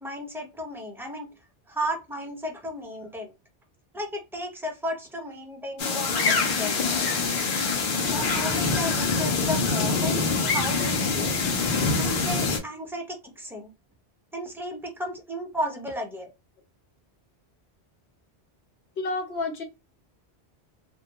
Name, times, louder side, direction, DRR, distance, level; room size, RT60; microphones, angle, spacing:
voice 1, 0.0-1.3 1.7-3.3 3.9-6.7 8.0-11.4 11.9-13.7 14.3-16.3, equal, 5° right, 0.3 m, -34 dB
sound 1, 5.8-12.6, left 4 dB, 60° left, 0.7 m, -25 dB
voice 2, 19.0-19.6, left 3 dB, 85° left, 1.0 m, -30 dB
2.2 x 2.1 x 2.8 m
omnidirectional pair, 1.1 m